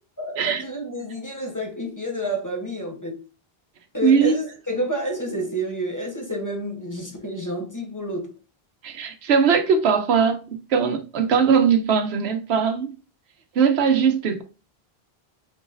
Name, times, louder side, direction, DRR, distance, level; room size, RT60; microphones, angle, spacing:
voice 1, 0.2-3.2 3.9-8.3, equal, 20° left, 0.9 m, -29 dB
voice 2, 4.0-4.3 8.8-12.9 13.5-14.4, right 6 dB, 90° right, 1.0 m, -20 dB
4.5 x 3.9 x 2.5 m
omnidirectional pair, 1.0 m